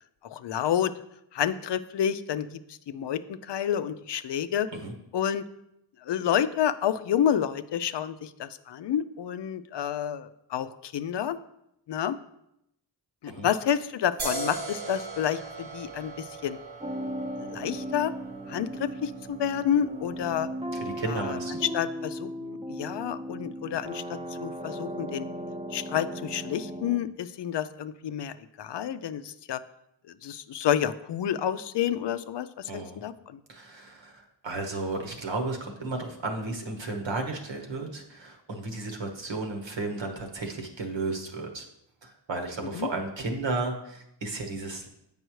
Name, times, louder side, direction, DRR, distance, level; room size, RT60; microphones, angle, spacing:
voice 1, 0.2-0.9 1.3-2.6 2.9-4.7 5.1-5.4 6.1-11.4 11.9-12.2 13.2-16.6 17.4-18.1 18.5-20.5 21.1-21.4 21.7-25.2 25.7-29.6 30.2-33.4 42.7-42.9, left 9 dB, 65° left, 12 dB, 0.5 m, -29 dB
sound 1, 14.2-21.5, right 3 dB, 85° right, 2.4 m, -40 dB
sound 2, 16.8-27.0, equal, 15° right, 0.7 m, -37 dB
voice 2, 20.8-21.6 32.7-33.0 33.5-41.6 42.0-44.9, right 3 dB, 65° right, 3 dB, 1.3 m, -33 dB
7.8 x 5.4 x 3.1 m, 0.80 s
cardioid pair, 55°, 47 cm